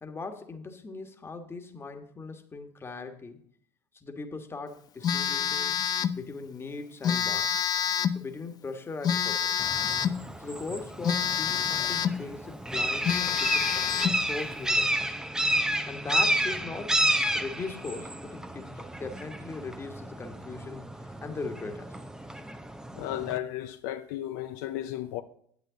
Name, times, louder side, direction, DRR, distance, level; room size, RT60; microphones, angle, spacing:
voice 1, 0.0-3.4 3.9-5.8 6.1-7.6 8.1-9.6 10.4-14.9 15.9-17.0 17.3-22.0, left 3 dB, 25° left, 1.5 m, -39 dB
Telephone, 5.0-6.2 7.0-8.2 9.0-10.2 11.0-12.2 12.7-12.8 13.0-14.2, left 8 dB, 40° left, 0.5 m, -27 dB
sound 1, 9.6-23.4, right 1 dB, 5° right, 0.7 m, -31 dB
voice 2, 22.9-25.2, left 13 dB, 80° left, 0.6 m, -34 dB
9.4 x 7.9 x 3.9 m
supercardioid pair, 90°, 10 cm